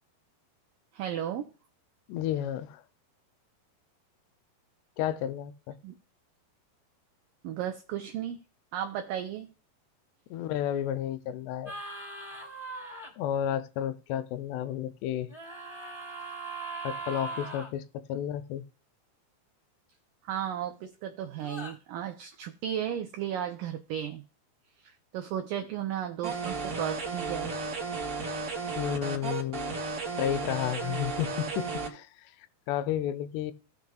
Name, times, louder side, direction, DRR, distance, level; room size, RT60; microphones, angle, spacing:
voice 1, 0.9-1.5 5.8-5.9 7.4-8.4 8.7-9.5 20.2-24.2 24.8-27.5, right 10 dB, 80° right, 2.0 m, -34 dB
voice 2, 2.1-2.8 5.0-5.8 10.3-11.7 13.2-15.3 16.8-18.6 28.8-29.7 30.2-32.1 32.7-33.5, left 10 dB, 85° left, 2.7 m, -32 dB
sound 1, 11.7-13.1 15.3-17.7 21.4-21.7, right 3 dB, 10° left, 2.5 m, -39 dB
sound 2, 26.2-31.9, right 4 dB, 35° right, 1.4 m, -34 dB
17.0 x 5.9 x 2.3 m
omnidirectional pair, 4.8 m